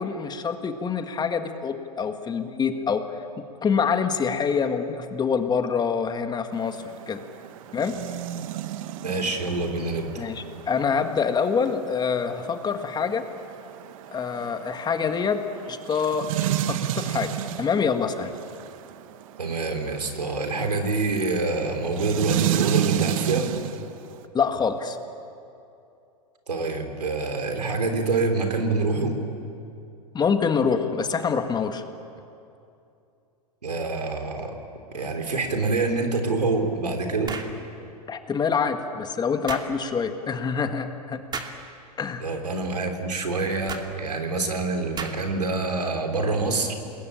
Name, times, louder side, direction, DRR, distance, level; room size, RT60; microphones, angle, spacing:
voice 1, 0.0-3.0 3.6-6.8 7.1-7.2 7.7-8.0 10.2-13.3 14.1-16.3 16.7-17.3 17.6-18.3 24.3-25.0 30.1-31.8 38.1-41.2 42.0-42.2, left 6 dB, 20° left, 7 dB, 1.9 m, -25 dB
sound 1, 6.5-24.2, right 12 dB, 60° right, 1.4 m, -32 dB
voice 2, 9.0-10.1 19.4-23.5 26.5-29.2 33.6-34.5 34.9-37.3 42.2-46.7, right 3 dB, 85° right, 4 dB, 3.7 m, -26 dB
sound 2, 37.3-37.6 39.5-39.7 41.3-41.6 43.7-43.9 45.0-45.4, right 5 dB, 20° right, 2.6 m, -33 dB
28.5 x 21.0 x 8.8 m, 2.6 s
hypercardioid pair, 100°, 20 cm